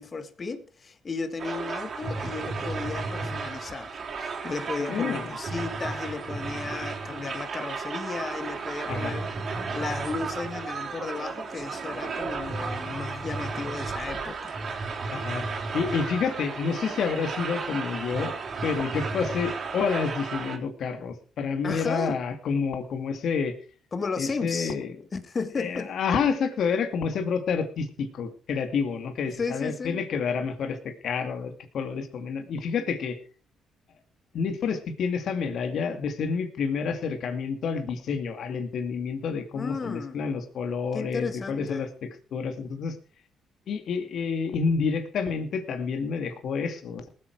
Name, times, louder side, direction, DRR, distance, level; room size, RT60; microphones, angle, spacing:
voice 1, 0.0-9.3 9.7-14.6 21.6-22.2 23.9-24.7 25.1-25.9 29.4-30.0 39.5-40.2 40.9-41.9, left 4 dB, 35° left, 10 dB, 1.6 m, -34 dB
sound 1, 1.4-20.6, right 4 dB, 50° right, 3.7 m, -33 dB
voice 2, 4.8-5.3 8.9-9.1 15.1-15.4 15.7-18.3 18.6-23.6 24.2-25.0 25.6-33.2 34.3-43.0 43.7-47.1, left 5 dB, 65° left, 7 dB, 2.3 m, -29 dB
19.0 x 8.8 x 4.7 m, 0.38 s
cardioid pair, 90°, 0 cm